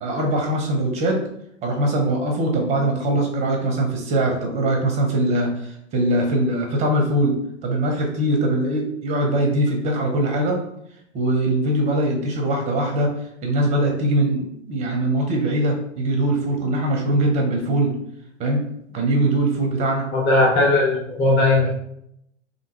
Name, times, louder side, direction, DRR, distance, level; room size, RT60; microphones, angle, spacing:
voice 1, 0.0-1.2 1.6-7.3 7.6-10.6 11.1-13.1 13.4-17.9 18.4-18.6 18.9-20.0, right 1 dB, 20° right, 2 dB, 0.6 m, -21 dB
voice 2, 20.1-21.7, left 2 dB, 30° left, -3 dB, 1.2 m, -18 dB
3.4 x 2.7 x 2.9 m, 0.75 s
hypercardioid pair, 120°, 37 cm